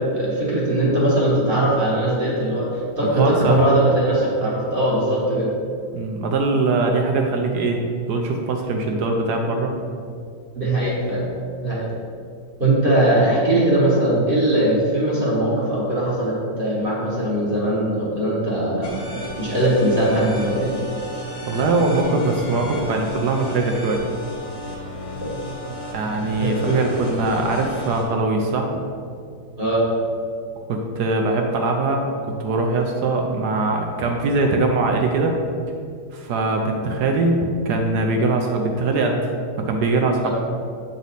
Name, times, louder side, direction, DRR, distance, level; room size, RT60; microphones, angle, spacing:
voice 1, 0.0-5.5 10.5-11.2 11.6-11.9 12.6-19.0 19.4-20.7 25.2-25.5 26.3-26.8 29.6-29.8 40.2-40.3, right 1 dB, 30° right, -6 dB, 1.3 m, -20 dB
voice 2, 3.0-3.6 5.9-7.8 8.1-9.7 21.5-24.0 25.9-28.8 30.7-35.4 36.1-37.4 37.7-39.2 39.7-40.3, right 3 dB, 70° right, 2 dB, 1.0 m, -21 dB
sound 1, 18.8-28.0, left 1 dB, 60° left, 1.9 m, -33 dB
7.8 x 4.1 x 4.0 m, 2.3 s
omnidirectional pair, 2.1 m